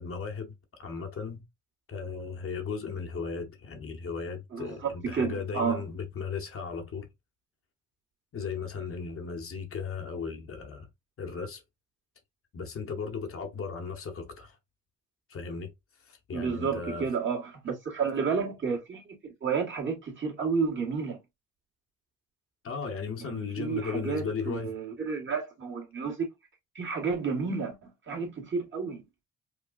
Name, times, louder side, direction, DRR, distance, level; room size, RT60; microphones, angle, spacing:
voice 1, 0.0-1.4 1.9-7.1 8.3-10.9 11.2-11.6 12.5-14.6 15.3-15.7 16.0-17.1 22.6-24.7, left 5 dB, 45° left, 1.0 m, -36 dB
voice 2, 4.5-5.8 16.3-21.2 23.2-26.3 26.8-29.0, right 5 dB, 40° right, 1.8 m, -31 dB
4.9 x 2.3 x 2.5 m
cardioid pair, 90°, 30 cm